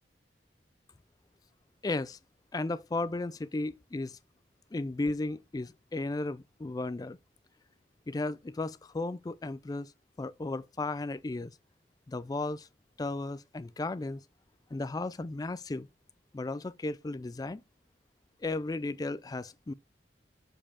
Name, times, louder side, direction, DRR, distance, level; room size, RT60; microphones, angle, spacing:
voice 1, 1.8-2.2 2.5-4.2 4.7-7.2 8.1-9.9 10.2-11.5 12.1-12.7 13.0-14.2 14.7-15.9 16.3-17.6 18.4-19.7, left 2 dB, 20° left, 0.3 m, -35 dB
6.8 x 4.9 x 3.6 m
head